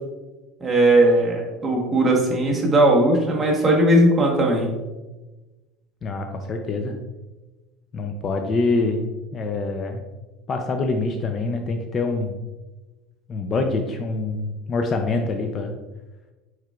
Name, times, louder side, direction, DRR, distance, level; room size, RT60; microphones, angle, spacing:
voice 1, 0.6-4.7, right 1 dB, 15° right, -2 dB, 1.1 m, -18 dB
voice 2, 6.0-6.9 7.9-9.0 9.3-10.0 10.5-12.4 13.3-15.7, left 3 dB, 30° left, 4 dB, 0.4 m, -25 dB
4.7 x 4.5 x 2.3 m, 1.1 s
supercardioid pair, 135°, 0 cm